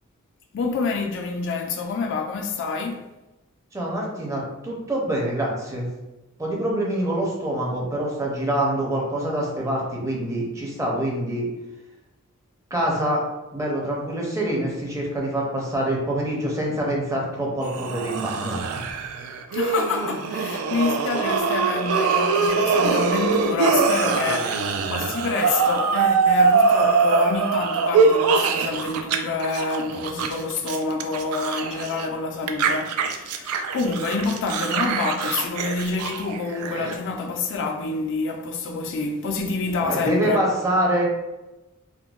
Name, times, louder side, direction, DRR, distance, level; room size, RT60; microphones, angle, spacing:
voice 1, 0.5-3.1 19.5-40.4, left 4 dB, 60° left, 0.3 m, -27 dB
voice 2, 3.7-5.9 6.4-11.5 12.7-13.2 13.5-18.8 39.8-41.0, right 1 dB, 15° right, 0.6 m, -25 dB
sound 1, 17.6-29.2 29.4-32.1 32.5-37.0, right 4 dB, 90° right, 0.3 m, -23 dB
3.7 x 2.1 x 2.3 m
head